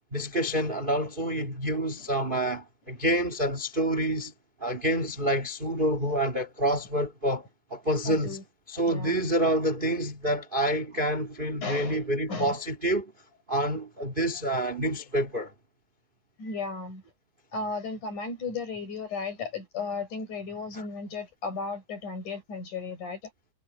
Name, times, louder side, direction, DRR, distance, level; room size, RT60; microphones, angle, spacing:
voice 1, 0.1-4.3 4.6-8.4 8.7-13.1 13.5-15.5 20.7-20.8, right 1 dB, 30° right, 0.9 m, -28 dB
voice 2, 8.1-8.4 8.9-9.3 11.6-12.6 16.4-17.0 17.5-23.3, left 4 dB, 50° left, 8.0 m, -35 dB
omnidirectional pair, 4.4 m